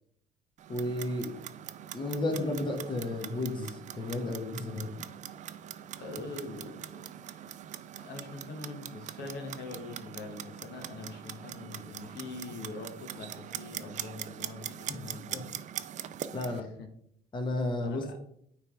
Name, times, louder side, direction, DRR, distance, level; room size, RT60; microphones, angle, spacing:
Clock, 0.6-16.6, right 10 dB, 45° right, 0.4 m, -42 dB
voice 1, 0.7-1.3 1.9-4.9 14.9-15.0 15.3-15.4 16.3-16.7 17.3-18.0, left 2 dB, 30° left, 3 dB, 1.2 m, -32 dB
voice 2, 6.0-7.1 7.4-7.5 8.0-15.5 16.4-16.9 17.8-18.2, left 3 dB, 75° left, 4 dB, 1.2 m, -43 dB
9.1 x 3.4 x 3.7 m, 0.71 s
cardioid pair, 110°, 17 cm